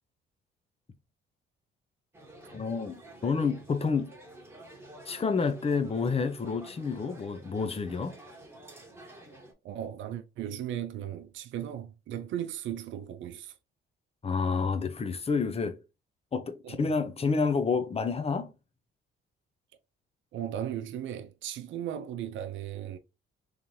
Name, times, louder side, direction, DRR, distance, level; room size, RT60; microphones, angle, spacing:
sound 1, 2.1-9.5, right 1 dB, 10° right, 1.4 m, -50 dB
voice 1, 2.5-4.1 5.1-8.2 14.2-15.8 16.3-18.5, left 5 dB, 30° left, 0.8 m, -29 dB
voice 2, 9.6-13.5 16.6-16.9 20.3-23.0, right 10 dB, 70° right, 0.5 m, -36 dB
3.8 x 3.2 x 2.7 m
cardioid pair, 90°, 20 cm